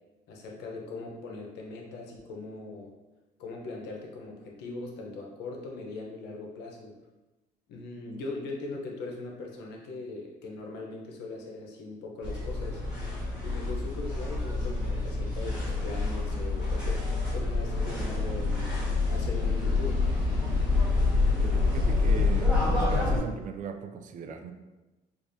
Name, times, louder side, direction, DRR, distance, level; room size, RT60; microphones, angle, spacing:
voice 1, 0.3-2.9 3.4-6.9 7.7-12.8 13.4-17.1 17.3-20.0, left 3 dB, 85° left, 0 dB, 0.8 m, -40 dB
sound 1, 12.2-23.2, left 3 dB, 5° right, 1.4 m, -27 dB
voice 2, 21.4-24.5, right 6 dB, 50° right, 7 dB, 0.4 m, -38 dB
4.8 x 2.5 x 2.6 m, 1.1 s
cardioid pair, 110°, 17 cm